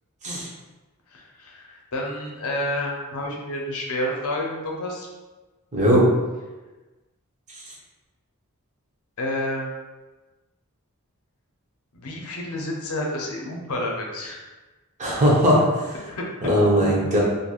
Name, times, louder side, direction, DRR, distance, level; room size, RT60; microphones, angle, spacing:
voice 1, 1.1-5.1 9.2-9.7 11.9-14.4 16.0-16.2 16.8-16.9, left 1 dB, 70° left, -1 dB, 0.6 m, -29 dB
voice 2, 5.7-6.1 15.0-15.9 16.4-17.2, equal, 35° right, -4 dB, 0.7 m, -19 dB
2.9 x 2.6 x 2.3 m, 1.2 s
head